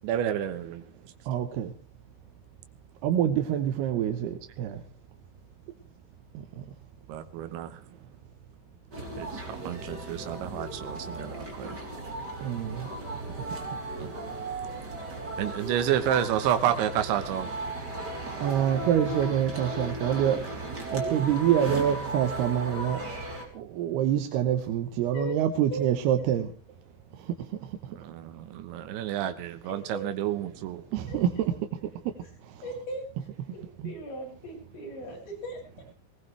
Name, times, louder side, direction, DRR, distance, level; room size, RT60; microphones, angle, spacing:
voice 1, 0.0-0.8 7.1-7.7 9.2-9.3 9.7-11.8 14.0-14.1 15.4-17.5 27.9-30.8, right 10 dB, 90° right, 9 dB, 3.5 m, -30 dB
voice 2, 1.3-1.7 3.0-4.8 12.4-12.9 18.4-20.4 20.9-23.0 23.6-26.5 30.9-31.3 33.8-33.9, right 10 dB, 70° right, 7 dB, 2.9 m, -26 dB
sound 1, 8.9-23.4, right 2 dB, 25° right, 3.7 m, -36 dB
voice 3, 29.6-30.0 31.1-31.2 32.6-33.0 33.5-35.6, equal, 75° left, -2 dB, 9.3 m, -38 dB
20.0 x 19.5 x 3.4 m, 0.38 s
omnidirectional pair, 5.1 m